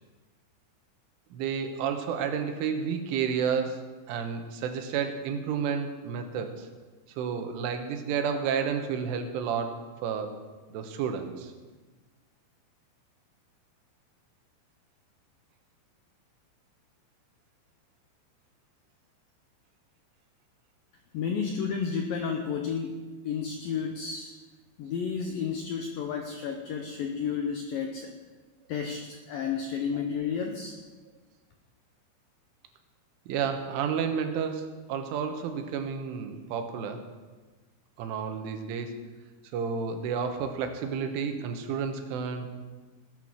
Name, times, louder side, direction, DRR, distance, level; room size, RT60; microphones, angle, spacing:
voice 1, 1.3-6.7 7.2-9.8 10.0-10.3 10.7-11.5 33.3-37.1 38.0-38.9 39.5-42.5, right 7 dB, 90° right, 6 dB, 3.8 m, -31 dB
voice 2, 21.1-24.3 24.8-28.1 28.7-30.8, left 6 dB, 80° left, 4 dB, 2.0 m, -32 dB
20.0 x 9.2 x 6.3 m, 1.3 s
omnidirectional pair, 5.4 m